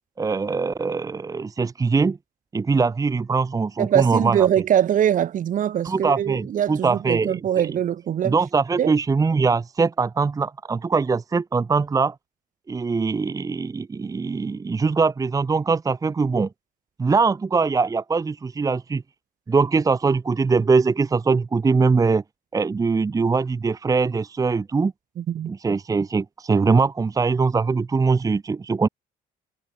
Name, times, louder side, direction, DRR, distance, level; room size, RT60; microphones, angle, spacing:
voice 1, 0.2-2.2 2.5-4.5 5.8-7.7 8.2-12.2 12.7-16.5 17.0-19.0 19.5-22.2 22.5-24.9 25.5-28.9, right 4 dB, 20° right, 0.8 m, -22 dB
voice 2, 3.8-8.3 8.8-8.9 25.2-25.5, right 10 dB, 50° right, 1.6 m, -22 dB
cardioid pair, 110°, 17 cm